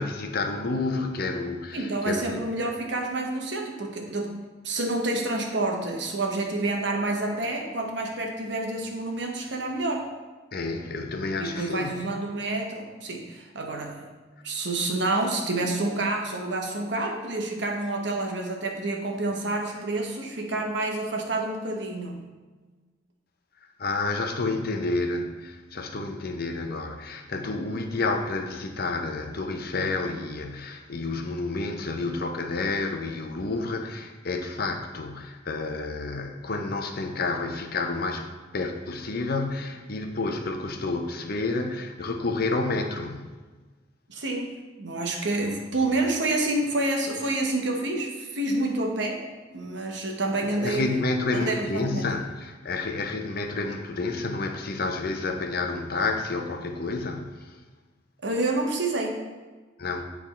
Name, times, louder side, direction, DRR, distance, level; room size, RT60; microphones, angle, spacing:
voice 1, 0.0-2.4 10.5-11.9 23.8-43.3 50.4-57.5 59.8-60.0, left 3 dB, 50° left, 4 dB, 0.7 m, -30 dB
voice 2, 1.7-4.3 4.6-10.1 11.4-14.1 14.4-22.2 24.5-24.6 44.1-49.2 49.5-50.9 51.3-52.1 58.2-59.2, right 2 dB, 65° right, 1 dB, 1.1 m, -28 dB
9.4 x 3.5 x 4.2 m, 1.3 s
head